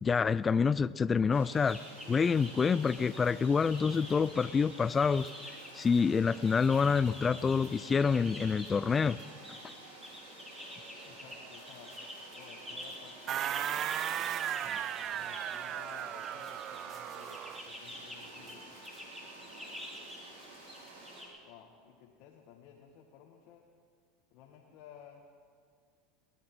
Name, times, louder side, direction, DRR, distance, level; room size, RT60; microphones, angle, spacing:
voice 1, 0.0-1.8 2.1-5.3 5.7-9.2, left 5 dB, 25° left, 20 dB, 0.4 m, -27 dB
sound 1, 1.3-21.2, right 2 dB, 85° right, 4.9 m, -51 dB
sound 2, 1.6-21.3, equal, 5° right, 3.5 m, -48 dB
voice 2, 11.0-11.9 12.3-13.9 14.9-18.6 21.4-23.6 24.3-25.3, left 7 dB, 60° left, 0 dB, 1.7 m, -55 dB
sound 3, 13.3-17.7, right 11 dB, 45° right, 0.4 m, -36 dB
20.0 x 11.0 x 6.2 m, 2.2 s
hypercardioid pair, 95°, 0 cm